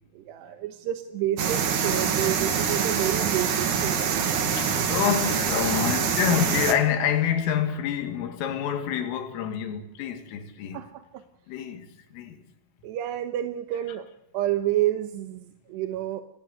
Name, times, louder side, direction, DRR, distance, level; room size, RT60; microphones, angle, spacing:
voice 1, 0.1-4.9 10.7-11.2 12.8-14.1 14.3-16.2, right 13 dB, 70° right, 2.9 m, -30 dB
sound 1, 1.4-6.7, right 7 dB, 50° right, 2.7 m, -25 dB
voice 2, 4.5-10.8 11.5-11.9 12.1-12.4, left 9 dB, 90° left, 4.8 m, -27 dB
27.0 x 18.5 x 8.0 m
omnidirectional pair, 5.7 m